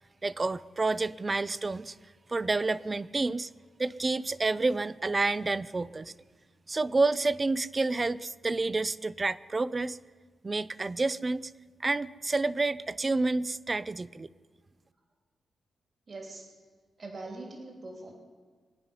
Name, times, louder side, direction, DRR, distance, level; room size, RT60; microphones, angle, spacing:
voice 1, 0.2-2.0 2.3-3.5 3.8-6.1 6.7-10.0 10.4-11.5 11.8-14.3, right 3 dB, 30° right, 17 dB, 0.5 m, -29 dB
voice 2, 16.1-16.5 17.0-18.1, right 2 dB, 45° right, 0 dB, 3.2 m, -42 dB
24.0 x 9.6 x 5.5 m, 1.5 s
cardioid pair, 85°, 0 cm